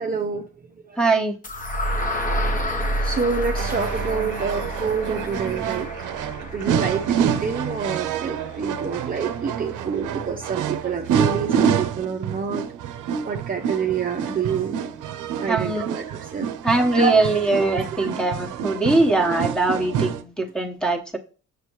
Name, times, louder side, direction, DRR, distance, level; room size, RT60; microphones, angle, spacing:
voice 1, 0.0-1.0 2.7-5.9 6.5-12.6 13.2-14.8 15.4-16.5 16.9-17.2 17.8-17.9, right 6 dB, 30° right, 2 dB, 0.7 m, -27 dB
voice 2, 1.0-1.4 15.5-15.8 16.6-21.2, right 2 dB, 5° left, 3 dB, 1.2 m, -21 dB
sound 1, 1.4-9.4, equal, 25° left, 1.1 m, -29 dB
sound 2, 3.6-20.2, right 8 dB, 85° right, 0.7 m, -27 dB
6.7 x 6.5 x 3.1 m, 0.36 s
cardioid pair, 90°, 30 cm